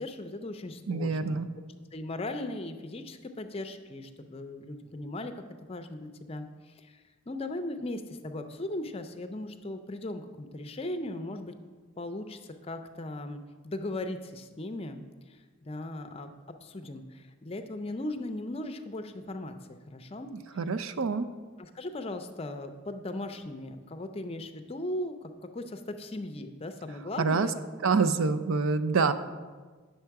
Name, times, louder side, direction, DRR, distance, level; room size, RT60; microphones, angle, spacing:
voice 1, 0.0-1.4 1.9-5.4 5.7-7.0 7.3-11.5 12.0-15.0 15.3-16.3 16.6-19.6 19.9-20.3 21.6-27.5 27.8-28.1, left 1 dB, 25° left, 7 dB, 0.5 m, -38 dB
voice 2, 0.9-1.5 20.6-21.3 27.2-27.5 27.8-29.1, right 4 dB, 70° right, 12 dB, 0.4 m, -26 dB
8.8 x 6.6 x 4.6 m, 1.4 s
head